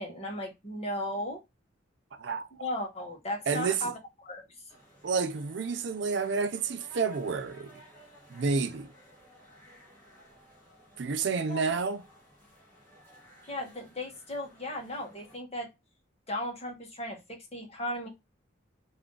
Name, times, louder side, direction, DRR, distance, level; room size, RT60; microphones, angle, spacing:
voice 1, 0.0-1.4 2.6-4.5 11.5-11.8 13.5-15.7 16.3-18.1, left 1 dB, 30° left, 1.1 m, -36 dB
voice 2, 2.2-2.6 3.5-3.9 5.0-7.8 8.3-8.9 11.0-12.0, right 5 dB, 60° right, 0.4 m, -30 dB
sound 1, 4.7-15.4, equal, 10° left, 1.3 m, -56 dB
3.4 x 2.6 x 3.7 m
head